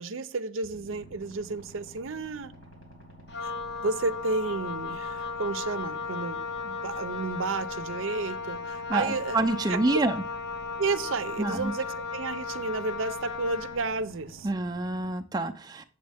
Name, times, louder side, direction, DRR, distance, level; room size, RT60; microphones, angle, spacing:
voice 1, 0.0-2.5 3.4-3.5 3.8-9.4 9.7-10.0 10.8-14.5, right 3 dB, 85° right, 12 dB, 0.6 m, -32 dB
sound 1, 0.6-15.1, equal, 85° left, 3.4 m, -50 dB
Wind instrument woodwind instrument, 3.3-13.9, left 4 dB, 55° left, 0.7 m, -36 dB
voice 2, 8.9-10.2 11.4-11.7 14.4-15.8, right 2 dB, 20° right, 4 dB, 0.4 m, -27 dB
7.8 x 7.4 x 3.4 m, 0.42 s
head